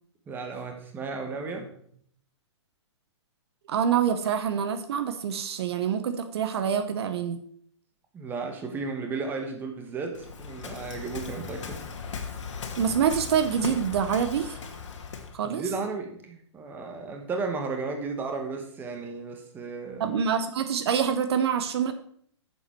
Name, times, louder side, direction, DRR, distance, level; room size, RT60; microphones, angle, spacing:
voice 1, 0.3-1.7 8.1-11.8 15.4-20.2, right 4 dB, 15° right, 4 dB, 1.3 m, -34 dB
voice 2, 3.7-7.4 12.8-14.6 15.3-15.6 20.0-21.9, right 8 dB, 60° right, 10 dB, 0.9 m, -26 dB
Waves surf, 10.1-15.4, left 5 dB, 80° left, 1.8 m, -38 dB
9.5 x 7.3 x 4.5 m, 0.63 s
hypercardioid pair, 155°, 15 cm